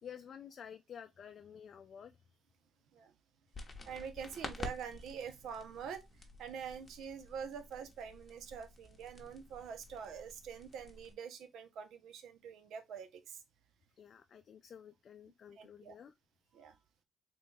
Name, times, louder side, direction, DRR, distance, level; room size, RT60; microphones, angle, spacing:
voice 1, 0.0-2.4 14.0-16.1 16.6-16.8, left 8 dB, 55° left, 0.3 m, -52 dB
sound 1, 3.5-11.1, left 3 dB, 30° left, 0.9 m, -50 dB
voice 2, 3.8-13.4 15.6-16.0 16.5-16.8, right 7 dB, 80° right, 0.6 m, -46 dB
3.7 x 2.3 x 3.8 m
cardioid pair, 90°, 0 cm